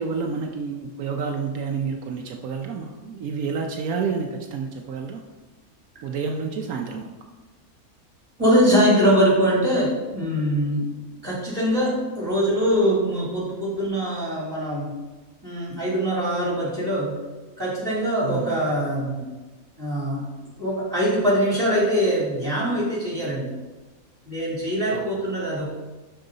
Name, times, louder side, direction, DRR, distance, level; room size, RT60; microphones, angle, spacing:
voice 1, 0.0-5.2 6.0-7.1 18.2-18.6 24.9-25.2, right 5 dB, 80° right, 2 dB, 1.1 m, -29 dB
voice 2, 8.4-10.9 11.2-14.9 15.4-17.2 17.6-19.3 19.8-20.3 20.6-23.5 24.2-25.7, equal, 15° right, -6 dB, 2.9 m, -22 dB
12.0 x 4.6 x 3.9 m, 1.2 s
omnidirectional pair, 1.5 m